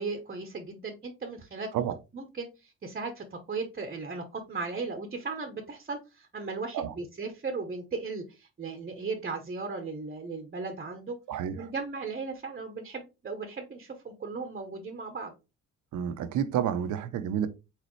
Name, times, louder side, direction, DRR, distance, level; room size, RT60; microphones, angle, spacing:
voice 1, 0.0-1.9 2.1-11.2 11.5-15.3, right 4 dB, 30° right, 0.9 m, -37 dB
voice 2, 15.9-17.5, right 9 dB, 80° right, 0.7 m, -29 dB
4.2 x 3.9 x 3.1 m
cardioid pair, 90°, 30 cm